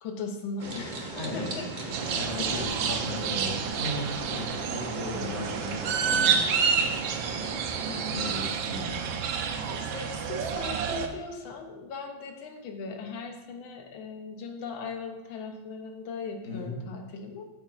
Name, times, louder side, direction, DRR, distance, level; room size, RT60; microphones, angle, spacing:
voice 1, 0.0-1.6 2.1-3.7 7.9-8.2 8.4-8.7 9.5-17.5, left 4 dB, 85° left, 3 dB, 1.5 m, -39 dB
sound 1, 0.6-8.4, right 2 dB, 45° right, 0.6 m, -39 dB
voice 2, 1.2-1.5 1.9-4.4 4.7-6.5 6.7-7.1 8.1-9.1 16.4-16.7, left 1 dB, 60° left, -4 dB, 2.5 m, -37 dB
sound 2, 1.9-11.1, right 6 dB, 85° right, 1.4 m, -29 dB
8.7 x 7.2 x 2.4 m, 1.1 s
omnidirectional pair, 2.1 m